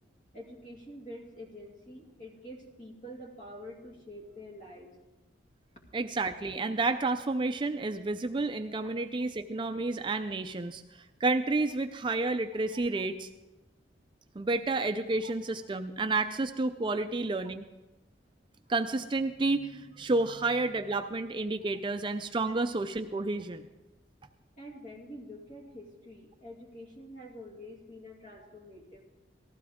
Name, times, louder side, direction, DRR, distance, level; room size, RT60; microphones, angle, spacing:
voice 1, 0.3-4.9 5.9-6.0 8.8-9.0 12.7-12.8 15.2-15.3 16.9-17.0 20.2-20.3 24.6-29.1, equal, 40° left, -1 dB, 2.5 m, -47 dB
voice 2, 5.9-13.3 14.4-17.7 18.7-23.7, right 3 dB, 25° right, 7 dB, 0.4 m, -30 dB
18.5 x 14.5 x 3.6 m, 1.1 s
head